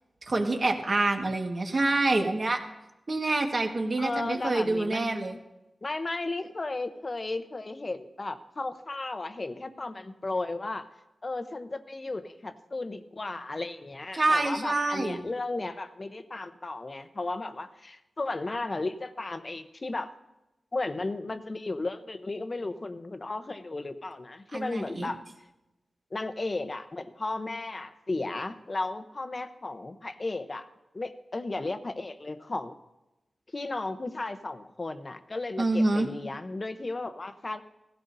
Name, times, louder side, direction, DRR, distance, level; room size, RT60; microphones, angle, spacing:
voice 1, 0.3-2.6 3.1-5.3 14.1-15.2 24.5-25.1 35.6-36.1, right 2 dB, 45° right, 3 dB, 1.5 m, -26 dB
voice 2, 4.0-5.1 5.8-10.9 11.2-20.1 20.7-25.2 26.1-30.7 30.9-32.7 33.5-37.6, left 2 dB, 35° left, 10 dB, 0.8 m, -34 dB
16.0 x 15.5 x 2.7 m, 0.95 s
wide cardioid pair, 100°, 0 cm